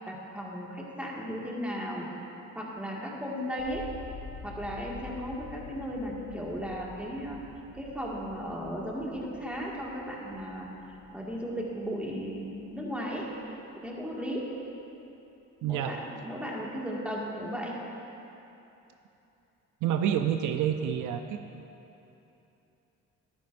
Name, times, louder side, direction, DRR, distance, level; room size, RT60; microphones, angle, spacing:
voice 1, 0.0-2.1 2.5-3.8 4.4-7.4 7.7-10.7 11.1-13.3 13.7-14.4 15.6-17.7, equal, 5° right, -4 dB, 1.9 m, -35 dB
sound 1, 3.6-13.6 13.9-14.6, left 5 dB, 55° left, 1.2 m, -48 dB
voice 2, 15.6-16.0 19.8-21.4, right 9 dB, 80° right, 7 dB, 0.6 m, -28 dB
13.5 x 10.5 x 2.6 m, 3.0 s
cardioid pair, 90°, 30 cm